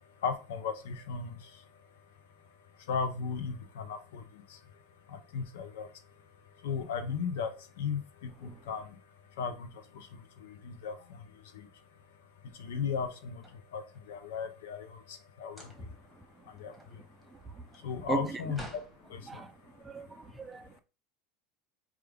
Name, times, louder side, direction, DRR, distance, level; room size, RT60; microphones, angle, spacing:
voice 1, 0.2-1.4 2.9-4.2 5.1-5.9 6.6-8.8 9.4-9.7 9.9-10.1 10.4-11.2 11.5-11.7 12.6-13.4 13.7-15.7 16.6-16.7 17.8-18.8 19.1-19.4, left 6 dB, 85° left, 0.6 m, -36 dB
sound 1, 13.1-14.2 15.4-16.1 16.5-19.0, right 1 dB, 5° left, 1.2 m, -50 dB
voice 2, 19.8-20.8, right 4 dB, 15° right, 0.4 m, -36 dB
4.7 x 2.4 x 3.4 m
supercardioid pair, 120°, 0 cm